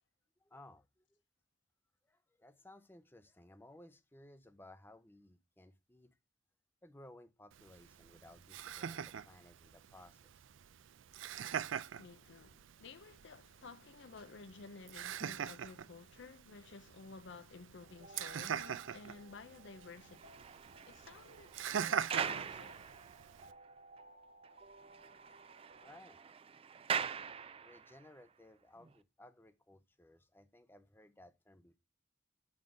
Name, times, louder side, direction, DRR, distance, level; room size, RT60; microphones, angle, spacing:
voice 1, 0.4-1.2 2.1-6.2 6.8-10.3 25.8-26.2 27.6-31.8, left 1 dB, 10° left, 0.6 m, -59 dB
Laughter, 7.5-23.5, right 8 dB, 90° right, 0.4 m, -43 dB
voice 2, 12.0-20.2 20.9-22.9, left 4 dB, 70° left, 0.6 m, -53 dB
sound 1, 17.8-26.0, right 2 dB, 50° right, 0.8 m, -60 dB
sound 2, 19.9-23.7 24.0-24.1 24.4-24.5 24.8-28.1 28.8-28.9, right 7 dB, 30° right, 0.3 m, -43 dB
7.1 x 3.9 x 6.1 m
head